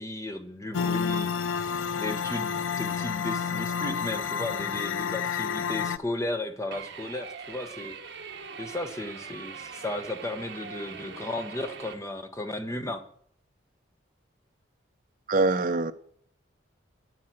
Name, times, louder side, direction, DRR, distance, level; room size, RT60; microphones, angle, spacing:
voice 1, 0.0-7.9 8.6-13.0, left 1 dB, 15° left, 1.1 m, -35 dB
sound 1, 0.7-6.0, left 6 dB, 85° left, 0.5 m, -30 dB
sound 2, 6.7-11.9, right 6 dB, 65° right, 1.3 m, -42 dB
voice 2, 15.3-15.9, right 3 dB, 45° right, 0.7 m, -23 dB
10.0 x 9.7 x 7.7 m
head